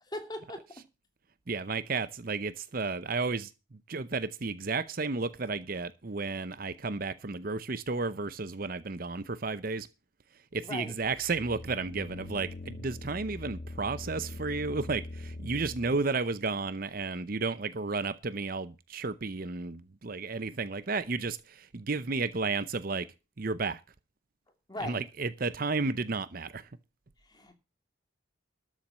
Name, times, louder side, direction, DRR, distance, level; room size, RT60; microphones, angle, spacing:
voice 1, 0.1-0.6 10.6-10.9 24.7-25.0 27.2-27.5, left 1 dB, 20° left, 2.6 m, -39 dB
voice 2, 1.5-3.5 3.9-9.9 10.5-23.1 23.4-23.8 24.8-26.7, right 4 dB, 45° right, 0.7 m, -32 dB
sound 1, 11.0-16.0, left 2 dB, 40° left, 0.6 m, -42 dB
13.0 x 7.4 x 6.2 m
head